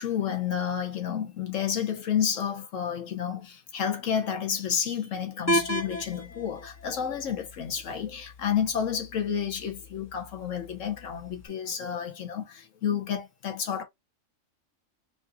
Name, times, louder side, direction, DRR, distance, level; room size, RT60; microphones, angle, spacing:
voice 1, 0.0-13.8, left 8 dB, 75° left, 1.2 m, -30 dB
sound 1, 5.5-11.5, right 1 dB, 25° left, 0.4 m, -35 dB
5.0 x 2.6 x 2.5 m
omnidirectional pair, 1.4 m